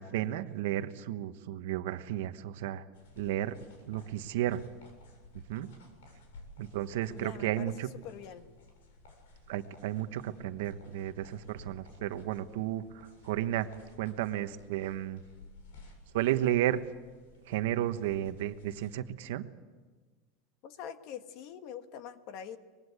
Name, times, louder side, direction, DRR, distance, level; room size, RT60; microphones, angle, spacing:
voice 1, 0.0-2.8 3.2-3.6 3.9-4.6 5.5-5.7 6.6-7.9 9.5-13.7 14.0-15.2 16.1-16.8 17.5-19.4, right 13 dB, 65° right, 10 dB, 1.2 m, -33 dB
sound 1, 2.9-18.9, left 2 dB, 80° left, 7.5 m, -56 dB
voice 2, 7.1-7.7 8.0-8.5 20.6-22.6, left 8 dB, 40° left, 9 dB, 1.4 m, -44 dB
24.5 x 21.0 x 8.2 m, 1.4 s
supercardioid pair, 170°, 0 cm